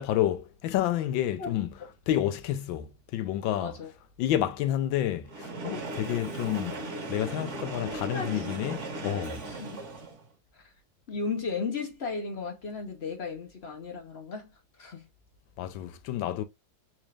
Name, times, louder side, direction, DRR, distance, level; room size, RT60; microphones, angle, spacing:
voice 1, 0.0-1.7 2.1-3.8 4.2-6.8 7.1-9.4 15.6-16.4, left 12 dB, 75° left, 1.3 m, -29 dB
voice 2, 3.6-3.9 8.1-8.5 9.5-9.8 10.5-10.7 11.1-14.5 14.8-15.1, left 4 dB, 60° left, 0.7 m, -35 dB
Train, 5.2-10.3, right 2 dB, 45° right, 1.1 m, -37 dB
4.1 x 2.4 x 3.2 m
omnidirectional pair, 2.1 m